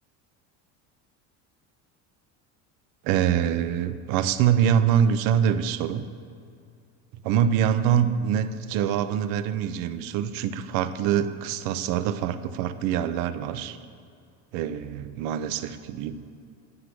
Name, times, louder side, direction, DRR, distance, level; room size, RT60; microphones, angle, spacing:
voice 1, 3.0-6.0 7.2-13.8 14.5-16.2, right 9 dB, 65° right, 12 dB, 0.6 m, -24 dB
9.7 x 5.0 x 6.1 m, 2.4 s
cardioid pair, 135°, 37 cm